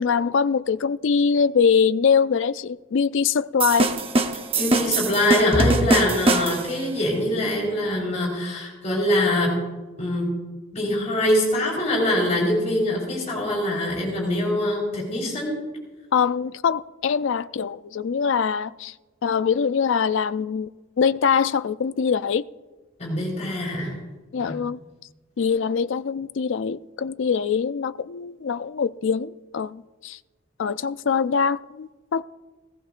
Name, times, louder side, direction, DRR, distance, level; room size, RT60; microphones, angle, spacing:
voice 1, 0.0-3.9 16.1-18.9 19.2-20.7 21.0-22.5 24.3-24.8 25.4-30.2 30.6-32.2, left 6 dB, 65° left, 0.4 m, -23 dB
sound 1, 3.6-6.8, right 2 dB, 25° right, 0.7 m, -22 dB
voice 2, 4.6-9.5 10.0-10.3 10.7-15.5 23.0-23.9 24.4-24.6, left 1 dB, 35° left, 4.1 m, -23 dB
17.5 x 17.5 x 2.5 m
head